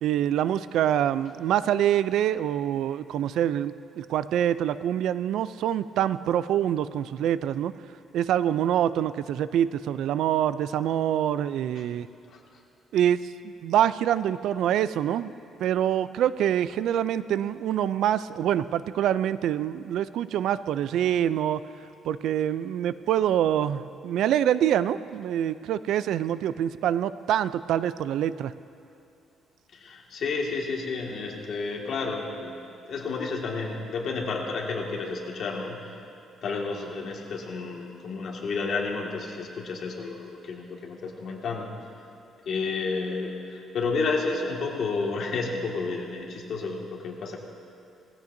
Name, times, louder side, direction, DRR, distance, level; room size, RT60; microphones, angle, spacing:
voice 1, 0.0-7.7 8.1-12.1 12.9-15.3 15.6-21.6 22.0-28.5, right 10 dB, 75° right, 15 dB, 0.3 m, -25 dB
voice 2, 29.7-32.6 32.9-35.9 36.4-41.7 42.5-47.4, left 4 dB, 55° left, -1 dB, 1.9 m, -31 dB
18.5 x 15.5 x 2.7 m, 2.6 s
cardioid pair, 130°, 0 cm